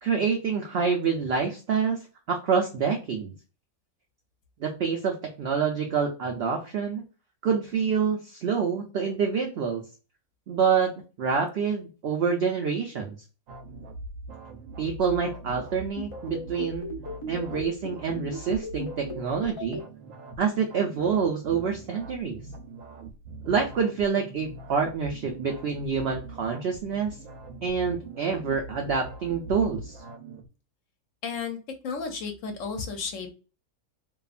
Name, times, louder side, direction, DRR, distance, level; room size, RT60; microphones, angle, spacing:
voice 1, 0.0-3.3 4.6-7.0 7.4-9.8 10.5-10.9 11.2-13.2 14.8-16.9 17.3-19.8 20.4-22.4 23.5-27.1 27.6-30.0, right 6 dB, 85° right, 2 dB, 0.5 m, -27 dB
sound 1, 13.5-30.5, right 2 dB, 70° right, 0.9 m, -42 dB
sound 2, 16.0-19.8, left 3 dB, 45° left, 0.4 m, -36 dB
voice 2, 31.2-31.6 31.8-33.3, left 5 dB, 65° left, 4 dB, 0.9 m, -33 dB
2.8 x 2.3 x 2.4 m, 0.34 s
omnidirectional pair, 1.6 m